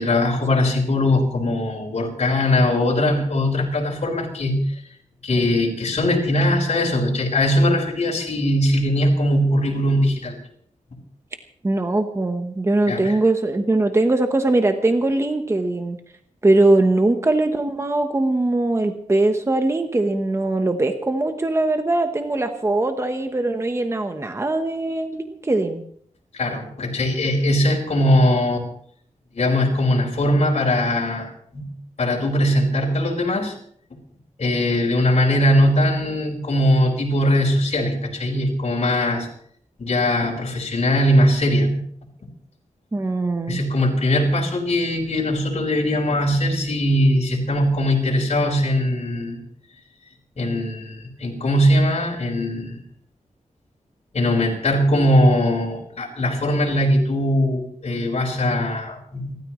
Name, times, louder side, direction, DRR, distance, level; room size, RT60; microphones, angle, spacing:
voice 1, 0.0-4.8 5.2-10.3 12.9-13.2 26.3-28.6 29.3-31.7 32.0-33.5 34.4-39.3 39.8-41.7 43.5-49.4 50.4-52.8 54.1-59.3, left 1 dB, 55° left, -3 dB, 5.2 m, -20 dB
voice 2, 11.6-16.0 16.4-25.8 42.9-43.6, right 2 dB, 20° right, 6 dB, 1.1 m, -21 dB
30.0 x 13.5 x 3.2 m, 0.63 s
wide cardioid pair, 155°, 13 cm